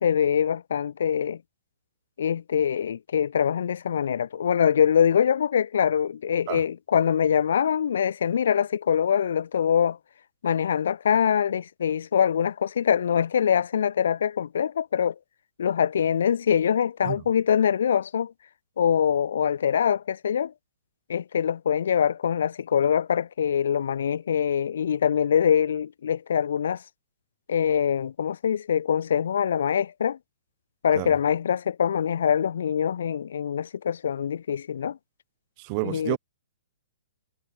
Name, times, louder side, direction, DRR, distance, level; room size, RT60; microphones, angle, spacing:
voice 1, 0.0-1.4 2.2-10.0 10.4-15.1 15.6-18.3 18.8-20.5 21.1-26.8 27.5-30.2 30.8-35.0 35.8-36.2, left 8 dB, 60° left, 1.1 m, -24 dB
voice 2, 35.6-36.2, right 33 dB, 35° right, 1.9 m, -29 dB
figure-of-eight pair, 115°, 0 cm